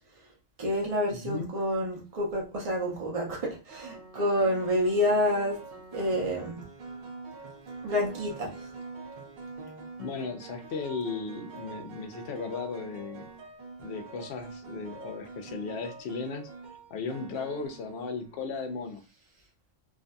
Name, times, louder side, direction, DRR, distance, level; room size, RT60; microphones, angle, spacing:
voice 1, 0.6-5.6 5.9-6.6 7.8-8.5, equal, 35° right, -2 dB, 0.8 m, -28 dB
voice 2, 1.1-1.5 10.0-13.3 13.8-16.5 16.9-19.0, left 4 dB, 65° left, 6 dB, 0.8 m, -36 dB
sound 1, 2.1-2.4 3.7-18.5, right 4 dB, 60° right, 0.5 m, -45 dB
2.6 x 2.5 x 2.2 m, 0.31 s
omnidirectional pair, 1.3 m